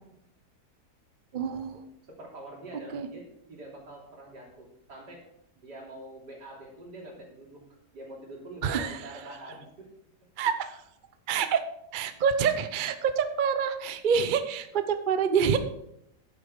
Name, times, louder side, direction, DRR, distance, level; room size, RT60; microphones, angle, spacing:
voice 1, 1.3-1.7 2.9-3.1 8.6-9.0 10.4-10.8 11.3-11.6 11.9-15.6, right 7 dB, 40° right, 9 dB, 0.7 m, -26 dB
voice 2, 2.1-5.2 5.5-7.6 7.9-9.9, right 1 dB, 85° right, -2 dB, 3.8 m, -45 dB
10.5 x 8.9 x 4.9 m, 0.79 s
omnidirectional pair, 1.7 m